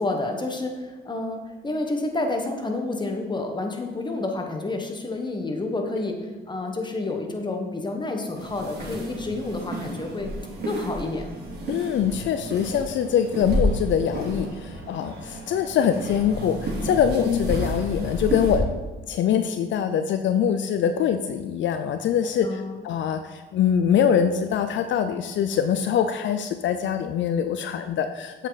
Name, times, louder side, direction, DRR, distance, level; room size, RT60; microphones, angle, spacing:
voice 1, 0.0-10.3 10.6-11.3 17.2-17.4 22.4-22.9, left 2 dB, 20° left, 3 dB, 1.4 m, -29 dB
sound 1, 8.4-18.6, right 1 dB, 55° right, 3.1 m, -31 dB
voice 2, 11.7-18.6 19.1-28.5, left 8 dB, 70° left, 8 dB, 0.5 m, -24 dB
8.1 x 7.5 x 4.1 m, 1.3 s
cardioid pair, 90°, 20 cm